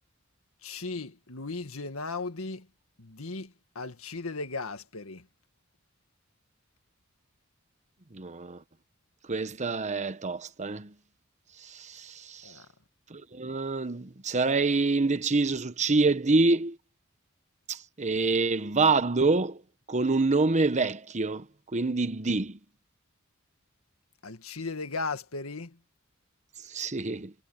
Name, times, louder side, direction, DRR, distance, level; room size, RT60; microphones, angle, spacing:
voice 1, 0.6-2.7 3.0-5.2 12.4-12.7 24.2-25.8, left 3 dB, 80° left, 1.9 m, -36 dB
voice 2, 8.1-8.6 9.3-10.9 11.6-12.5 13.1-16.8 17.7-19.6 19.9-21.5 21.7-22.6 26.7-27.3, right 3 dB, 35° right, 1.0 m, -26 dB
head